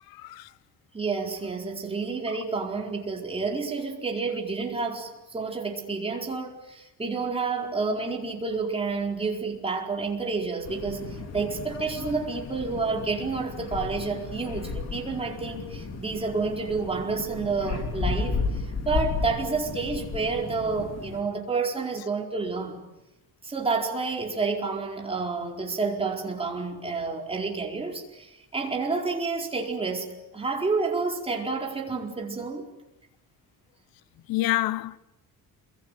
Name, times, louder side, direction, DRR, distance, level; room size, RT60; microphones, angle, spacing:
voice 1, 0.1-0.5 34.3-35.0, left 16 dB, 85° left, 1.0 m, -27 dB
voice 2, 0.9-22.8 23.4-30.1 30.3-32.7, right 4 dB, 15° right, 4.7 m, -29 dB
sound 1, 10.6-21.2, left 4 dB, 45° left, 3.8 m, -34 dB
28.5 x 22.5 x 9.3 m
cardioid pair, 165°, 35 cm